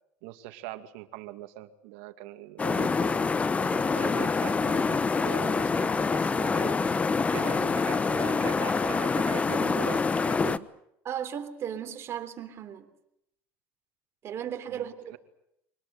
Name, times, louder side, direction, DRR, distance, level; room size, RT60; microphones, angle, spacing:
voice 1, 0.2-3.3 3.7-6.8 7.3-10.7 14.7-15.2, right 15 dB, 85° right, 2.3 m, -41 dB
sound 1, 2.6-10.6, left 4 dB, 20° left, 0.9 m, -26 dB
voice 2, 11.0-12.9 14.2-15.1, right 9 dB, 40° right, 3.5 m, -36 dB
25.0 x 19.5 x 9.4 m
supercardioid pair, 115°, 7 cm